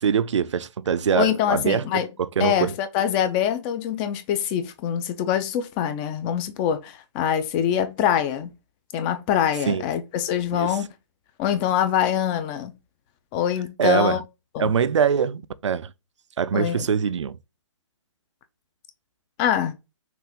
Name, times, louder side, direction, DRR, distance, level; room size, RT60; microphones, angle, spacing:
voice 1, 0.0-1.9 2.2-2.7 9.7-9.8 10.5-10.8 13.8-14.2 14.6-15.9 16.4-17.4, right 7 dB, 70° right, 0.5 m, -23 dB
voice 2, 1.2-2.1 2.4-8.5 8.9-10.9 11.4-12.8 13.3-14.2 14.5-14.7 16.5-16.9 19.4-19.8, left 10 dB, 20° left, 0.4 m, -24 dB
5.9 x 2.5 x 3.5 m
hypercardioid pair, 150°, 16 cm